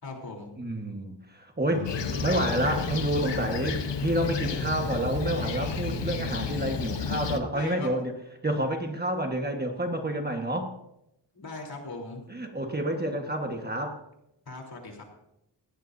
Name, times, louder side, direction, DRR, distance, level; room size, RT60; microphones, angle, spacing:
voice 1, 0.0-0.5 7.5-7.9 11.3-12.2 14.5-15.0, left 2 dB, 60° left, 1 dB, 3.6 m, -39 dB
voice 2, 0.6-1.9 2.2-8.1 8.4-10.7 12.3-14.0, right 1 dB, 25° right, 3 dB, 1.4 m, -29 dB
sound 1, 1.7-5.3, left 1 dB, 40° right, 5.1 m, -43 dB
Fixed-wing aircraft airplane, 1.8-7.4, left 5 dB, 80° left, 1.1 m, -31 dB
19.5 x 17.0 x 2.7 m, 0.84 s
wide cardioid pair, 165°, 42 cm